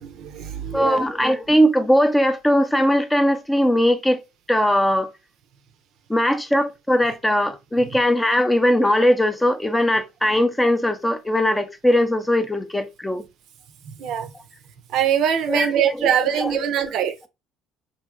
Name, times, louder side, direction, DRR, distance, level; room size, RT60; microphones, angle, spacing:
voice 1, 0.0-1.0 14.0-14.3 14.9-17.1, right 9 dB, 65° right, 0.5 m, -22 dB
voice 2, 0.7-4.2 4.5-5.1 6.1-13.2 15.5-15.7 16.4-16.5, equal, 10° left, 0.5 m, -19 dB
3.0 x 2.6 x 2.4 m
hypercardioid pair, 70°, 0 cm